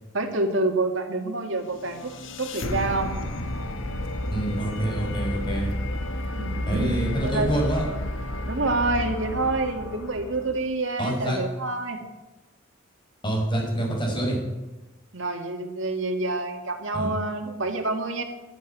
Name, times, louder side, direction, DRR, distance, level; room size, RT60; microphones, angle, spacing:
voice 1, 0.1-2.1 2.4-3.1 6.3-7.5 8.5-12.0 15.1-18.2, right 2 dB, 70° right, 4 dB, 2.1 m, -27 dB
sound 1, 1.6-10.7, left 1 dB, 75° left, 1.6 m, -31 dB
voice 2, 4.3-5.7 6.7-7.9 11.0-11.4 13.2-14.4 16.9-17.1, right 1 dB, 25° left, -1 dB, 5.6 m, -26 dB
12.0 x 12.0 x 9.3 m, 1.1 s
head